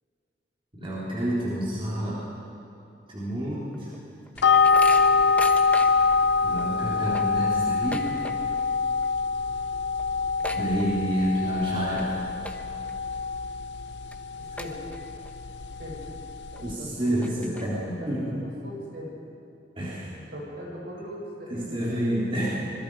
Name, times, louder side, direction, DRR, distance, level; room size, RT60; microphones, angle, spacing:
voice 1, 0.8-2.3 3.1-3.9 6.4-8.2 10.5-12.2 16.6-18.4 19.8-20.1 21.5-22.5, right 1 dB, 30° right, -7 dB, 3.9 m, -29 dB
sound 1, 3.7-6.2 6.6-6.7 7.0-8.7 8.9-9.3 9.6-9.7 9.9-11.3 11.8-12.0 12.4-12.9 13.4-13.5 14.1-14.2 14.6-15.3 15.7-15.8 16.6-16.7 17.0-17.9, left 1 dB, 10° left, 1.2 m, -39 dB
sound 2, 4.4-16.7, left 5 dB, 70° left, 0.7 m, -25 dB
voice 2, 14.6-15.1 15.8-16.2 16.5-17.1 17.3-19.2 20.3-22.0, equal, 65° right, -4 dB, 7.2 m, -40 dB
26.0 x 22.0 x 5.0 m, 2.7 s
head